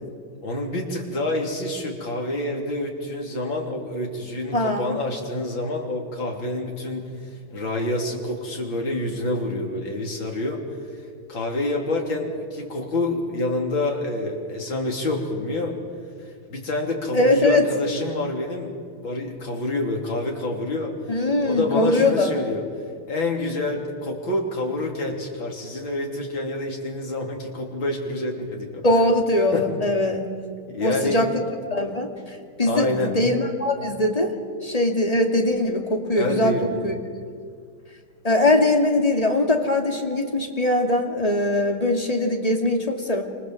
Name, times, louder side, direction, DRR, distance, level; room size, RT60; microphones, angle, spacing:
voice 1, 0.4-7.1 7.5-10.6 11.3-15.8 16.5-18.7 19.0-22.6 23.1-28.8 29.5-29.7 30.7-31.2 32.6-33.2 36.2-36.9, left 2 dB, 60° left, 1 dB, 4.2 m, -27 dB
voice 2, 4.5-5.0 17.1-17.6 21.1-22.3 28.8-30.3 30.8-31.3 31.7-34.3 34.6-36.9 38.2-43.2, left 1 dB, 15° left, 2 dB, 2.5 m, -21 dB
28.5 x 26.5 x 7.7 m, 2.1 s
omnidirectional pair, 2.4 m